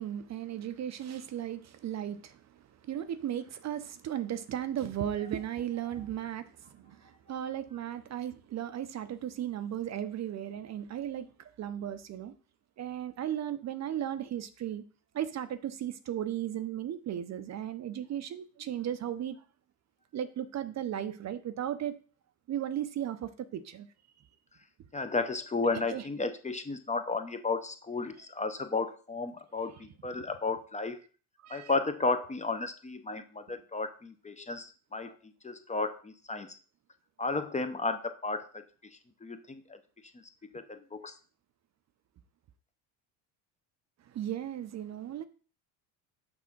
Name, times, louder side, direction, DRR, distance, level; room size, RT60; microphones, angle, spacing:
voice 1, 0.0-2.4 2.9-6.5 6.8-12.3 12.8-14.8 15.1-19.4 20.1-22.0 22.5-23.9 25.9-26.0 31.4-31.7 44.1-45.3, right 10 dB, 40° right, 0.6 m, -36 dB
voice 2, 24.9-31.0 31.5-35.1 35.4-36.6 37.2-38.5 39.2-39.8 40.5-41.1, left 3 dB, 15° left, 0.6 m, -33 dB
6.1 x 3.5 x 5.9 m
supercardioid pair, 90°, 42 cm